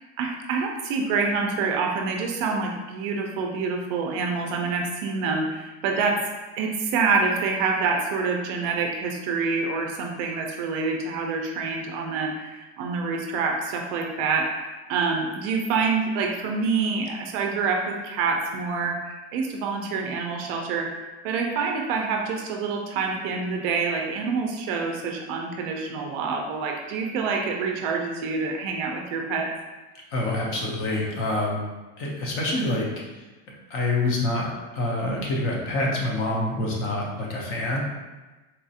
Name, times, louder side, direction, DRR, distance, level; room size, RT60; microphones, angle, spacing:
voice 1, 0.2-6.2 6.6-14.4 14.9-20.9 21.2-29.5, right 4 dB, 50° right, 1 dB, 0.4 m, -26 dB
voice 2, 30.1-31.6 32.0-32.9 33.7-37.8, left 2 dB, 35° left, -2 dB, 0.6 m, -26 dB
4.1 x 2.3 x 2.7 m, 1.2 s
cardioid pair, 170°, 34 cm